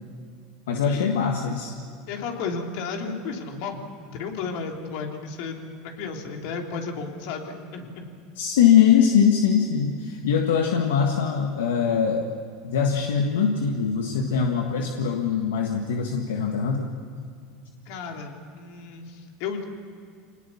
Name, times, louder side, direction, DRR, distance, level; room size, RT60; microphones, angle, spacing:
voice 1, 0.7-1.8 8.3-12.3 12.6-16.9, left 7 dB, 85° left, 2 dB, 1.6 m, -22 dB
voice 2, 2.1-5.6 5.8-8.1 17.9-19.7, left 5 dB, 65° left, 2 dB, 3.3 m, -33 dB
25.5 x 19.5 x 7.2 m, 2.3 s
supercardioid pair, 105°, 0 cm